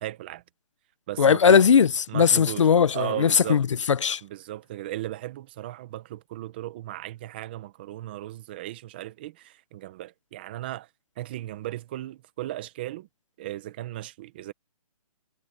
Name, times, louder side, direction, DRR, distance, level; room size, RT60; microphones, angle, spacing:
voice 1, 0.0-0.4 1.1-1.6 2.1-3.6 4.2-10.9 11.2-13.1 13.4-14.5, right 15 dB, 15° right, 0.8 m, -36 dB
voice 2, 1.2-4.2, left 7 dB, 55° left, 1.0 m, -19 dB
hypercardioid pair, 175°, 18 cm